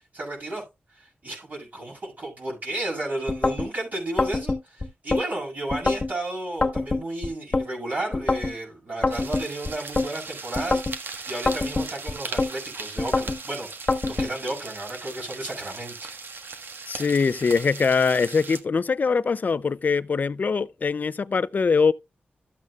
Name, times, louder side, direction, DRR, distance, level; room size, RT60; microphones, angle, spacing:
voice 1, 0.1-0.6 0.9-13.7 14.0-15.9, right 1 dB, 50° right, 6.8 m, -33 dB
sound 1, 3.3-3.7 4.2-5.2 5.7-6.1 6.6-7.7 8.1-8.5 9.0-10.1 10.6-11.0 11.5-12.5 13.0-13.4 13.9-14.3, left 3 dB, 35° left, 1.3 m, -25 dB
sound 2, 9.1-18.6, right 4 dB, 75° right, 1.5 m, -38 dB
voice 2, 16.9-21.9, left 5 dB, 50° left, 0.5 m, -22 dB
13.5 x 8.4 x 2.4 m
wide cardioid pair, 125°, 4 cm